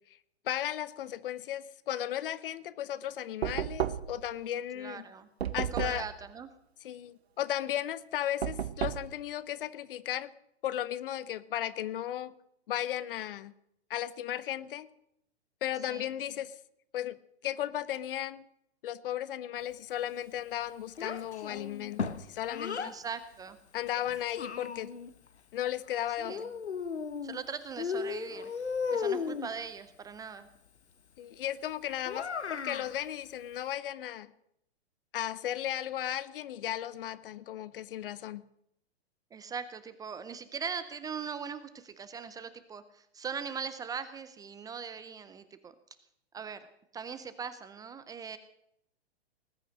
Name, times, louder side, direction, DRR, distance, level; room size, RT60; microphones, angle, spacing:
voice 1, 0.4-5.1 5.5-6.1 6.8-10.3 10.6-12.3 12.7-13.5 13.9-14.9 15.6-16.5 16.9-17.2 17.4-18.5 18.8-22.9 23.7-24.9 25.5-26.4 31.2-34.3 35.1-38.4, left 11 dB, 55° left, 17 dB, 0.9 m, -35 dB
Knock, 3.4-4.3 5.4-6.1 8.4-9.1, right 9 dB, 75° right, 0.9 m, -32 dB
voice 2, 4.7-5.3 5.7-6.5 15.9-16.1 22.8-23.6 26.2-26.4 27.2-28.5 28.9-30.5 39.3-45.7 46.3-46.7 46.9-48.4, right 6 dB, 10° right, 13 dB, 0.5 m, -40 dB
Child speech kid speaking, 21.0-23.0 23.9-25.1 26.3-27.4 27.8-29.5 32.1-32.9, left 6 dB, 85° left, 1.1 m, -35 dB
19.5 x 9.1 x 6.4 m, 0.77 s
hypercardioid pair, 115°, 33 cm